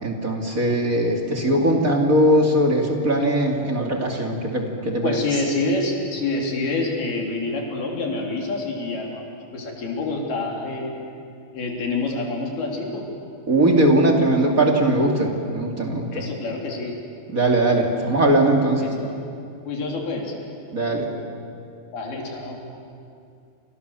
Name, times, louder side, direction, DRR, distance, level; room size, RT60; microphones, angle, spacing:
voice 1, 0.0-5.2 13.5-16.2 17.3-18.9 20.7-21.1, right 1 dB, 25° right, 1 dB, 2.0 m, -20 dB
voice 2, 5.0-10.9 11.5-13.0 16.1-16.9 18.8-19.1 19.7-20.3 21.9-22.6, left 3 dB, 60° left, 0 dB, 4.9 m, -27 dB
29.5 x 27.0 x 7.1 m, 2.5 s
omnidirectional pair, 5.1 m